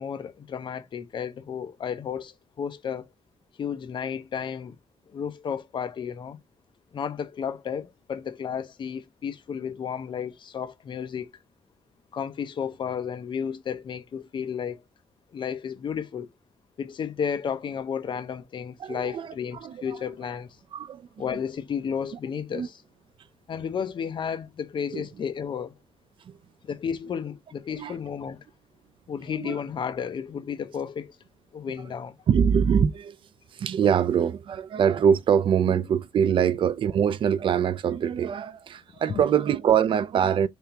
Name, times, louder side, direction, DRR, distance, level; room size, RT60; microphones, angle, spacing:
voice 1, 0.0-3.1 3.6-4.7 5.1-6.4 6.9-11.3 12.1-14.8 15.3-16.3 16.8-20.5 21.2-22.8 23.5-25.7 26.6-28.4 29.1-31.2 31.5-32.2 39.1-39.2, left 7 dB, 50° left, 0.6 m, -32 dB
voice 2, 18.8-20.0 20.7-21.2 22.5-22.7 24.9-25.1 26.3-26.4 27.8-28.0 29.3-29.6 32.3-33.2 33.5-40.5, right 8 dB, 55° right, 0.4 m, -24 dB
3.5 x 3.4 x 2.8 m
wide cardioid pair, 150°, 10 cm